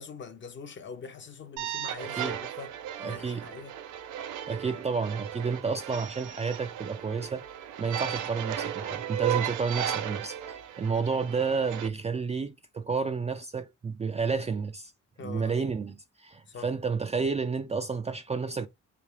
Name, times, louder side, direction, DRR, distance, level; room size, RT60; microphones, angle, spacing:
voice 1, 0.0-3.7 10.9-11.1 15.2-15.6 16.5-16.7, left 5 dB, 40° left, 0.7 m, -43 dB
sound 1, 1.6-11.9, right 10 dB, 85° right, 0.5 m, -35 dB
voice 2, 3.0-3.5 4.5-7.4 7.8-14.9 15.2-18.7, right 5 dB, 25° right, 0.3 m, -31 dB
3.4 x 2.4 x 3.2 m
cardioid pair, 90°, 30 cm